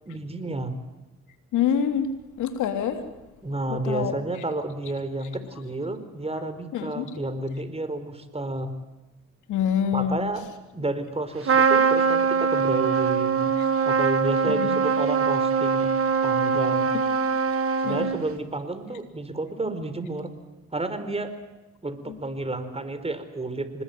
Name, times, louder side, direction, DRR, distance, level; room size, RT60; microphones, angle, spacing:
voice 1, 0.1-0.7 3.4-8.7 9.9-10.5 10.7-13.6 13.8-15.9 16.2-16.9 17.8-20.3 20.7-21.3 21.8-23.8, right 2 dB, 20° right, 10 dB, 4.3 m, -31 dB
voice 2, 1.5-2.1 2.4-3.0 3.9-4.1 6.7-7.0 9.5-10.2 14.4-14.8 17.8-18.1, left 9 dB, 85° left, 7 dB, 3.2 m, -25 dB
Trumpet, 11.4-18.4, right 6 dB, 50° right, 2.4 m, -22 dB
25.0 x 21.0 x 9.3 m, 1.1 s
cardioid pair, 70°, 30 cm